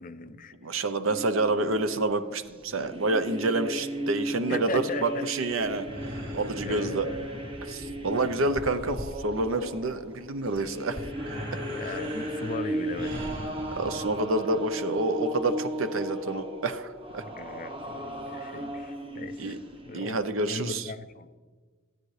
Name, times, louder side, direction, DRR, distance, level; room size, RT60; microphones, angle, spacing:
voice 1, 0.0-0.5 4.5-5.3 6.6-7.2 8.1-8.4 11.7-13.3 17.3-19.6 19.8-20.2 20.5-21.3, left 4 dB, 40° left, 10 dB, 0.5 m, -38 dB
voice 2, 0.6-5.9 6.3-7.1 7.7-11.0 13.8-17.2 19.4-19.6 19.9-20.9, right 2 dB, 75° right, 11 dB, 0.7 m, -28 dB
sound 1, 1.1-20.1, equal, 25° right, 1.1 m, -36 dB
sound 2, 5.5-14.1, equal, 55° right, 2.3 m, -40 dB
15.5 x 9.1 x 3.3 m, 1.4 s
head